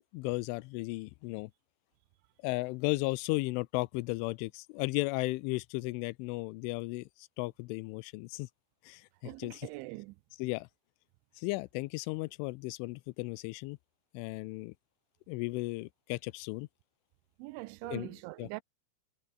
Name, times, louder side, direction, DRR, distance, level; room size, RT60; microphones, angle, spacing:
voice 1, 0.1-1.5 2.4-7.1 7.4-8.5 8.9-9.7 10.4-10.7 11.4-13.8 14.1-14.7 15.3-16.7 17.8-18.1 18.4-18.5, left 23 dB, 85° left, 3.1 m, -35 dB
voice 2, 9.2-10.2 17.4-18.6, right 23 dB, 85° right, 3.0 m, -42 dB
omnidirectional pair, 5.5 m